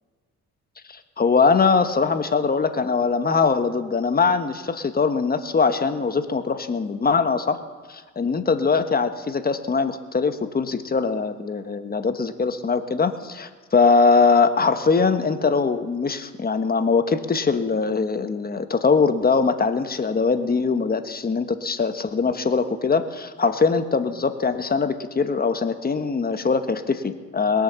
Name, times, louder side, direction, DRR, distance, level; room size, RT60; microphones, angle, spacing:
voice 1, 0.9-7.6 7.9-27.6, left 4 dB, 30° left, 9 dB, 1.2 m, -22 dB
21.5 x 7.9 x 6.9 m, 1.5 s
cardioid pair, 90°, 30 cm